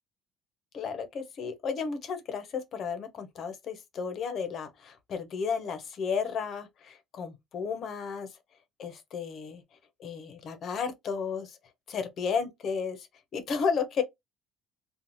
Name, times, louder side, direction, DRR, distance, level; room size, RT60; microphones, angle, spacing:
voice 1, 0.7-8.3 8.8-9.6 10.0-11.6 11.9-13.1 13.3-14.0, left 6 dB, 35° left, 0.6 m, -33 dB
2.6 x 2.0 x 3.0 m
cardioid pair, 180°, 0 cm